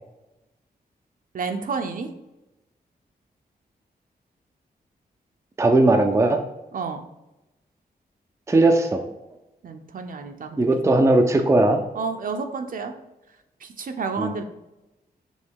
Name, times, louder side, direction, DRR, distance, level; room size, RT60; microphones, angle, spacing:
voice 1, 1.3-2.1 6.7-7.0 9.6-10.6 11.9-12.9 13.6-14.4, right 5 dB, 55° right, 6 dB, 0.7 m, -30 dB
voice 2, 5.6-6.4 8.5-9.0 10.6-11.8 14.2-14.3, right 2 dB, 15° right, 4 dB, 0.5 m, -18 dB
5.5 x 3.8 x 4.7 m, 0.97 s
wide cardioid pair, 160°, 17 cm